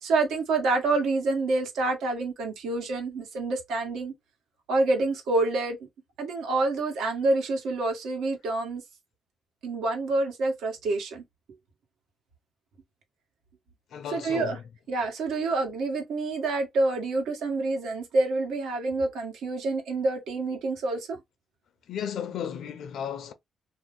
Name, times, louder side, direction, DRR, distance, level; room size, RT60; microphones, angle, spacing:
voice 1, 0.0-4.1 4.7-5.8 6.2-8.8 9.6-11.2 14.1-14.6 14.9-21.2, right 3 dB, 85° right, 1.2 m, -27 dB
voice 2, 13.9-14.6 21.9-23.3, left 8 dB, 70° left, 0.6 m, -34 dB
2.7 x 2.0 x 3.6 m
cardioid pair, 100°, 0 cm